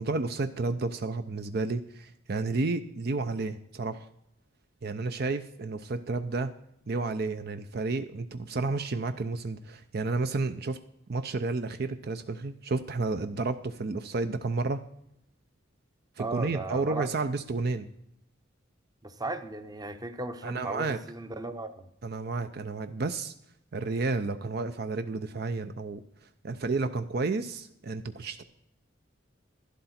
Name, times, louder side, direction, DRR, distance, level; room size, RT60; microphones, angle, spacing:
voice 1, 0.0-4.1 4.8-6.5 6.9-10.8 11.1-14.8 16.2-17.9 20.4-21.0 22.0-23.3 23.7-26.0 26.4-28.4, right 3 dB, 55° right, 10 dB, 0.5 m, -31 dB
voice 2, 16.2-17.1 19.0-21.9, right 2 dB, 20° right, 10 dB, 0.8 m, -36 dB
11.5 x 11.5 x 4.3 m, 0.76 s
head